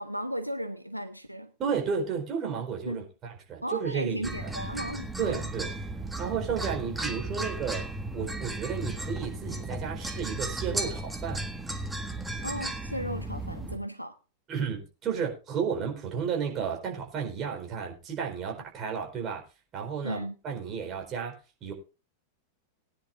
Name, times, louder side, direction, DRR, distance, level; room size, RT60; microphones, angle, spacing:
voice 1, 0.0-1.5 2.9-3.0 3.6-5.5 12.4-14.1 20.0-20.3, equal, 90° right, 10 dB, 0.6 m, -35 dB
voice 2, 1.6-4.5 5.2-5.7 6.2-7.9 8.1-11.4 14.5-19.4 19.7-21.3 21.6-21.7, right 6 dB, 30° right, 2 dB, 4.4 m, -33 dB
sound 1, 4.2-13.8, right 2 dB, 5° right, 1.6 m, -35 dB
19.5 x 10.0 x 2.6 m, 0.31 s
figure-of-eight pair, 90°, 0 cm